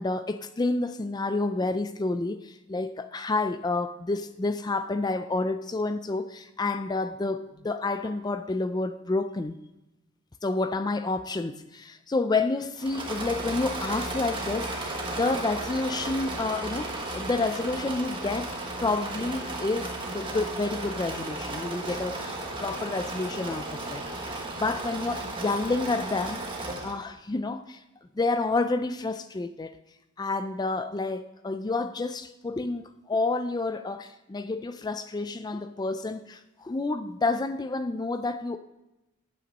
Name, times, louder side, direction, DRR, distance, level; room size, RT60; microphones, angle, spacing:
voice 1, 0.0-9.6 10.4-26.4 26.8-27.8 28.2-29.8 30.2-38.6, left 3 dB, 20° left, 0.4 m, -29 dB
Engine / Mechanisms, 12.8-27.0, right 2 dB, 20° right, 1.4 m, -34 dB
8.8 x 8.2 x 5.2 m
head